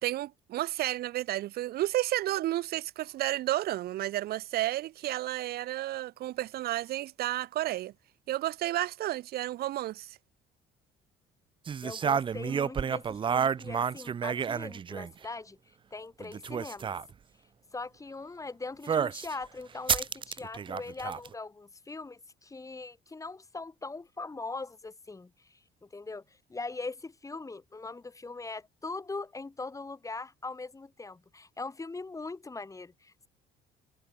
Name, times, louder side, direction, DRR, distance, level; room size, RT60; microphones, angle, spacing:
voice 1, 0.0-7.9 8.3-10.2, right 15 dB, 70° right, 0.9 m, -32 dB
sound 1, 11.7-15.2 16.2-17.0 18.9-19.3 19.9-21.3, right 7 dB, 30° right, 0.5 m, -30 dB
voice 2, 11.8-15.6 15.9-16.9 17.7-26.2 26.5-33.3, left 3 dB, 20° left, 6.2 m, -41 dB
cardioid pair, 110°, 17 cm